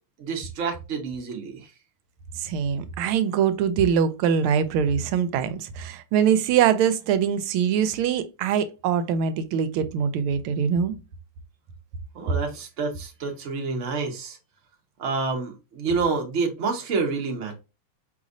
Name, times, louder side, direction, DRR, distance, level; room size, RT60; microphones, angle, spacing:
voice 1, 0.2-1.7 12.1-14.4 15.0-17.6, right 4 dB, 45° right, 1.0 m, -28 dB
voice 2, 2.3-10.9, right 8 dB, 90° right, 1.4 m, -23 dB
4.9 x 3.4 x 2.6 m
omnidirectional pair, 2.3 m